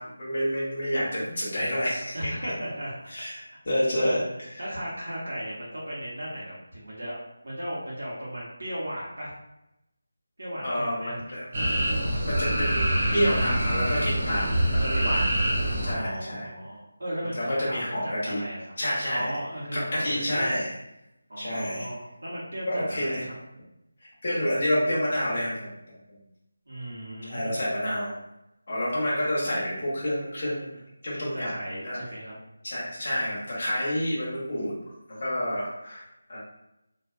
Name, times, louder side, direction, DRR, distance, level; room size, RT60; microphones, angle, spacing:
voice 1, 0.0-2.5 3.1-3.4 3.7-4.2 10.6-11.5 12.2-15.2 15.8-16.5 17.3-18.4 18.8-19.3 19.7-20.7 21.4-21.9 22.7-23.2 24.2-25.7 26.1-26.2 27.3-28.2 28.7-30.8 31.0-31.6 31.8-32.0 32.6-34.7 35.2-36.0 36.3-36.4, equal, 30° left, -6 dB, 0.8 m, -28 dB
voice 2, 2.1-3.1 3.4-4.2 4.6-7.2 7.4-9.3 10.4-11.2 15.8-18.6 19.1-20.6 21.3-23.3 26.7-27.5 31.2-32.3, equal, 80° right, -7 dB, 1.0 m, -36 dB
sound 1, 11.5-15.9, right 1 dB, 25° right, 0.5 m, -25 dB
2.4 x 2.2 x 2.3 m, 0.88 s
figure-of-eight pair, 175°, 0 cm